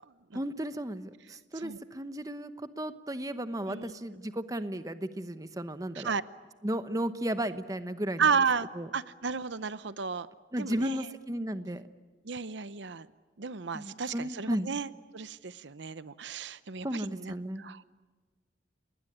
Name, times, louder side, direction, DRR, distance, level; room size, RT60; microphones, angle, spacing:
voice 1, 0.3-6.1 6.6-8.3 8.8-8.9 10.5-11.9 13.7-14.7 16.8-17.6, right 1 dB, 20° right, 11 dB, 0.9 m, -34 dB
voice 2, 8.2-8.7 8.9-10.3 10.6-11.0 12.3-13.1 13.4-17.8, right 5 dB, 80° right, 15 dB, 0.8 m, -32 dB
29.0 x 20.0 x 10.0 m, 1.4 s
head